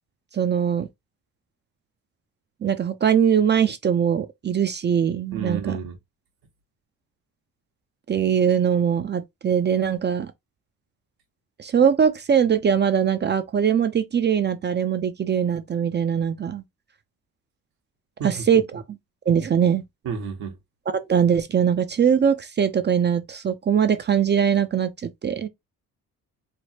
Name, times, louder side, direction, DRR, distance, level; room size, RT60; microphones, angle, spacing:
voice 1, 0.3-0.9 2.6-5.8 8.1-10.3 11.6-16.6 18.2-18.8 19.3-19.8 20.9-25.5, right 8 dB, 30° right, 0.4 m, -21 dB
voice 2, 5.3-6.0 18.2-18.4 20.0-20.5, right 6 dB, 80° right, 1.2 m, -30 dB
3.3 x 2.0 x 2.8 m
supercardioid pair, 65°, 36 cm